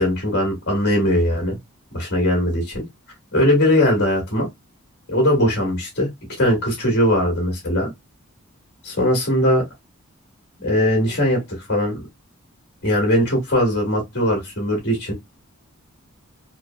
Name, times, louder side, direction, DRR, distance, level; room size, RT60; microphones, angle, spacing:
voice 1, 0.0-1.6 1.9-2.9 3.3-4.5 5.1-6.1 6.4-7.9 8.8-9.6 10.6-11.4 11.7-12.0 12.8-15.1, left 1 dB, 50° left, 1.7 m, -20 dB
3.8 x 2.1 x 2.3 m
head